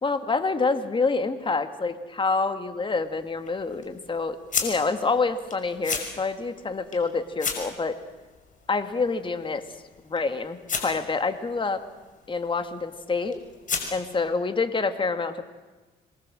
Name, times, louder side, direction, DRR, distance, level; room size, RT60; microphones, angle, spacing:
voice 1, 0.0-8.0 8.7-9.6 10.0-11.8 12.3-13.4 13.9-15.4, left 4 dB, 25° left, 9 dB, 2.2 m, -27 dB
sound 1, 2.7-14.3, left 5 dB, 45° left, 5.8 m, -37 dB
27.0 x 22.0 x 7.7 m, 1.2 s
cardioid pair, 90°, 19 cm